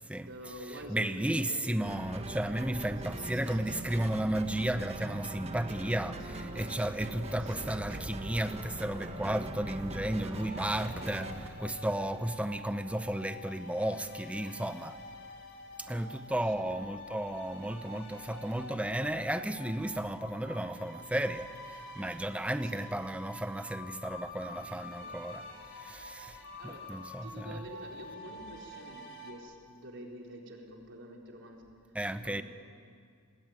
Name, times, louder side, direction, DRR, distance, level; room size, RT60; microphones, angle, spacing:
voice 1, 0.2-1.6 3.1-3.8 7.4-7.7 15.8-16.1 16.4-16.9 22.6-22.8 26.6-26.9 27.2-31.7 32.1-32.4, equal, 55° right, 4.2 m, -48 dB
voice 2, 0.9-15.0 15.8-25.4 25.7-27.6 31.9-32.4, right 1 dB, 5° right, 0.9 m, -34 dB
sound 1, 1.8-11.5, right 1 dB, 30° right, 1.7 m, -41 dB
sound 2, 6.2-13.2, left 2 dB, 85° right, 2.0 m, -52 dB
sound 3, 10.3-29.3, left 1 dB, 50° left, 3.7 m, -47 dB
28.0 x 20.0 x 9.4 m
head